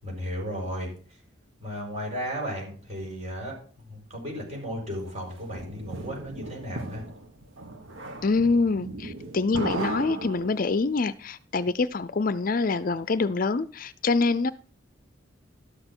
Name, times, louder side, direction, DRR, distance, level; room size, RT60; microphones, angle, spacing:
voice 1, 0.0-0.9 1.6-7.0, equal, 35° right, 6.1 m, -34 dB
sound 1, 5.1-10.9, right 2 dB, 85° right, 1.7 m, -36 dB
voice 2, 8.2-14.5, left 3 dB, 45° left, 0.5 m, -25 dB
12.5 x 6.6 x 6.1 m
head